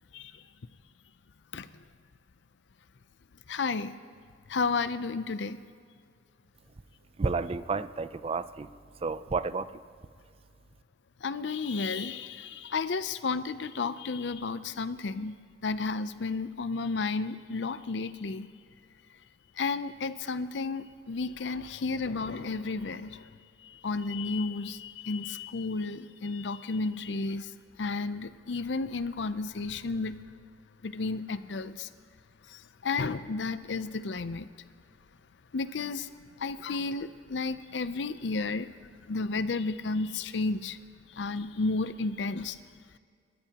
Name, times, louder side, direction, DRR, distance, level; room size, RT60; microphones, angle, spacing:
voice 1, 1.5-1.8 3.5-4.0 4.5-5.6 11.2-18.5 19.6-23.3 23.6-27.5 27.8-30.2 30.8-31.9 32.5-34.5 35.5-36.1 36.4-38.7 39.1-40.8 41.1-42.6, left 4 dB, 75° left, 13 dB, 0.6 m, -32 dB
voice 2, 7.2-8.7 9.0-9.7, right 4 dB, 30° right, 14 dB, 0.4 m, -31 dB
29.5 x 13.5 x 2.9 m, 2.2 s
head